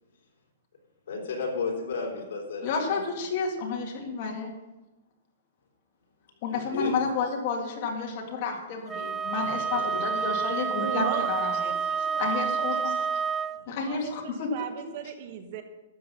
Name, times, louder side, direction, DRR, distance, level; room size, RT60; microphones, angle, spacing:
voice 1, 1.1-3.0 6.5-6.9 9.3-10.1, left 4 dB, 65° left, -1 dB, 3.6 m, -33 dB
voice 2, 2.6-4.5 6.4-11.6 12.2-12.9 13.7-14.5, left 4 dB, 40° left, 1 dB, 2.1 m, -31 dB
Wind instrument woodwind instrument, 8.9-13.6, right 6 dB, 10° right, 0.3 m, -29 dB
voice 3, 10.8-13.1 13.7-15.6, right 8 dB, 40° right, 7 dB, 1.1 m, -37 dB
12.5 x 7.8 x 5.6 m, 1.0 s
hypercardioid pair, 170°, 0 cm